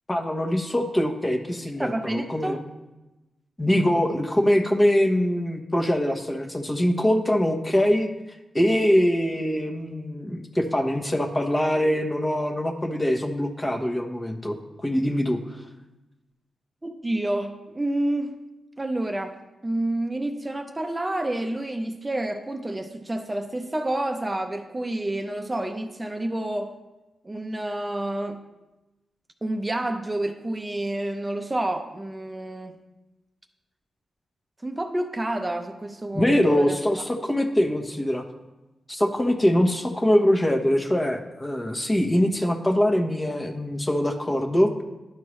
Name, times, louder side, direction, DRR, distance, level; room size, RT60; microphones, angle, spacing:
voice 1, 0.1-2.6 3.6-8.1 8.5-14.6 14.8-15.4 36.1-38.2 38.9-44.8, equal, 25° left, 3 dB, 1.1 m, -23 dB
voice 2, 1.8-2.6 16.8-18.4 18.8-26.7 27.2-28.4 29.4-32.8 34.6-36.8, right 1 dB, 25° right, 5 dB, 0.7 m, -29 dB
11.0 x 4.5 x 3.2 m, 1.0 s
supercardioid pair, 50°, 0 cm